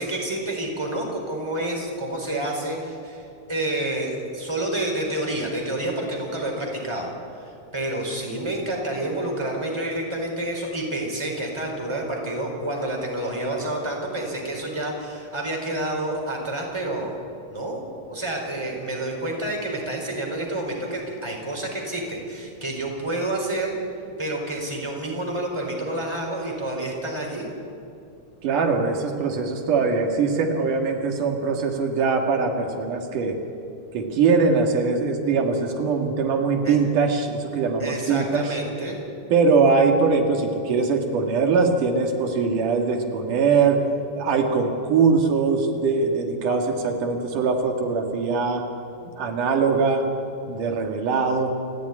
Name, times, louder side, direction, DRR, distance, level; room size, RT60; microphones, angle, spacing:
voice 1, 0.0-3.2 3.5-7.1 7.4-17.1 17.5-23.8 24.2-27.5 36.6-36.8 37.8-39.0, right 1 dB, 10° right, 0 dB, 4.4 m, -29 dB
voice 2, 28.4-33.4 33.9-38.6 39.3-43.8 44.1-48.6 49.2-50.1 50.5-51.5, right 4 dB, 85° right, 3 dB, 3.4 m, -22 dB
28.5 x 13.5 x 9.7 m, 2.6 s
omnidirectional pair, 3.6 m